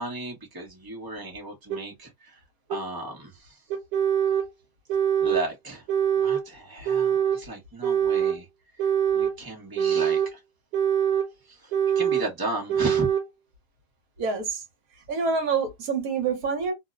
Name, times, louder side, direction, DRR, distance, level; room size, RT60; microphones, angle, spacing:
voice 1, 0.0-2.4 2.7-3.6 5.2-5.8 6.2-8.5 9.1-10.4 11.5-13.1, right 2 dB, 20° right, 0.6 m, -34 dB
sound 1, 1.7-1.8 2.7-2.8 3.7-4.5 4.9-5.5 5.9-6.4 6.9-7.4 7.8-8.4 8.8-9.4 9.8-10.3 10.7-11.3 11.7-12.3 12.7-13.3, right 8 dB, 80° right, 1.1 m, -23 dB
voice 2, 14.2-14.6 15.1-16.7, right 5 dB, 65° right, 1.2 m, -26 dB
2.9 x 2.0 x 2.3 m
omnidirectional pair, 1.7 m